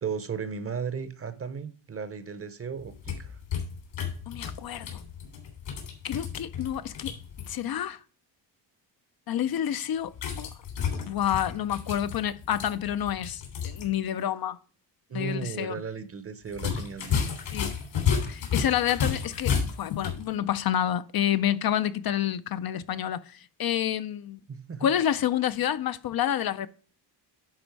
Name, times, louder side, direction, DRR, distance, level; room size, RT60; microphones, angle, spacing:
voice 1, 0.0-3.4 15.1-17.3 24.5-24.9, right 6 dB, 30° right, 0.8 m, -35 dB
sound 1, 2.8-7.5 10.1-13.9 14.2-14.3 16.5-20.2, left 6 dB, 80° left, 3.2 m, -32 dB
voice 2, 4.3-5.0 6.0-7.1 7.5-8.0 9.3-10.5 11.0-14.6 15.1-15.8 17.5-17.7 18.2-24.4 24.8-26.7, left 10 dB, 55° left, 0.5 m, -29 dB
10.5 x 4.2 x 4.6 m
cardioid pair, 130°, 45 cm